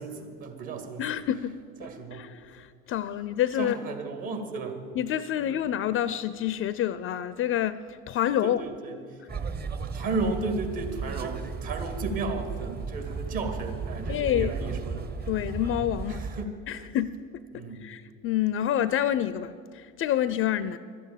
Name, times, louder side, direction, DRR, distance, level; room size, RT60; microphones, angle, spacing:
voice 1, 0.0-1.0 1.8-2.2 3.6-4.8 5.4-5.6 8.4-9.2 9.9-15.1 16.1-16.9 17.5-17.9, right 3 dB, 55° right, 6 dB, 2.2 m, -34 dB
voice 2, 1.0-3.8 5.0-8.6 14.1-14.6 15.3-16.3 16.7-20.8, left 11 dB, 30° left, 16 dB, 0.4 m, -28 dB
sound 1, 9.3-16.4, right 5 dB, 25° right, 0.8 m, -34 dB
12.5 x 8.5 x 8.8 m, 2.2 s
hypercardioid pair, 70°, 42 cm